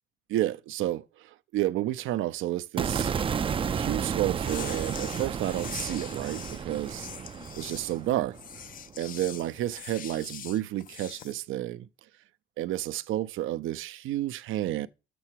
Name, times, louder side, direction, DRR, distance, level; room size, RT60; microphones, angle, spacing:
voice 1, 0.3-3.4 3.7-7.1 7.5-8.4 9.0-11.9 12.6-14.9, right 14 dB, 85° right, 0.6 m, -31 dB
sound 1, 2.8-9.0, right 7 dB, 25° right, 0.4 m, -32 dB
sound 2, 4.4-11.3, left 9 dB, 45° left, 0.4 m, -43 dB
7.0 x 6.7 x 4.5 m
cardioid pair, 115°, 20 cm